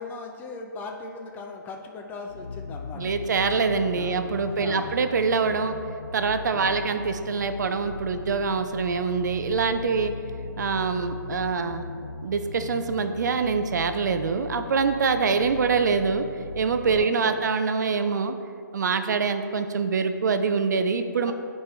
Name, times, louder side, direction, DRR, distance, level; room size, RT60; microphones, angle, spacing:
voice 1, 0.0-3.3 3.9-4.2 4.4-4.9 6.5-6.9 16.9-17.4 21.3-21.4, left 3 dB, 15° left, 2 dB, 0.6 m, -38 dB
sound 1, 2.3-17.0, left 4 dB, 85° left, 0.4 m, -38 dB
voice 2, 3.0-5.8 6.1-10.1 10.6-11.8 12.2-16.3 16.6-18.4 18.7-21.3, right 5 dB, 60° right, 9 dB, 0.5 m, -25 dB
10.0 x 4.5 x 3.3 m, 2.3 s
figure-of-eight pair, 135°, 11 cm